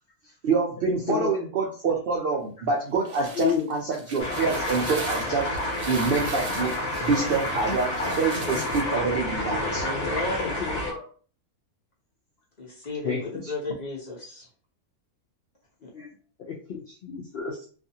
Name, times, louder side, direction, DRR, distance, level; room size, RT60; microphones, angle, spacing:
voice 1, 0.4-5.5 5.9-6.7 7.0-9.8, right 4 dB, 85° right, 0 dB, 0.5 m, -26 dB
sound 1, 2.8-9.0, right 4 dB, 60° right, 0.9 m, -41 dB
sound 2, 4.2-10.9, left 1 dB, 60° left, 1.0 m, -29 dB
voice 2, 9.8-10.5 12.6-14.5 15.8-15.9, left 2 dB, 35° left, -4 dB, 0.8 m, -34 dB
voice 3, 10.6-11.0 13.0-13.2 15.9-16.1 16.4-17.6, left 8 dB, 85° left, 0 dB, 0.5 m, -30 dB
2.5 x 2.5 x 2.7 m, 0.42 s
omnidirectional pair, 1.6 m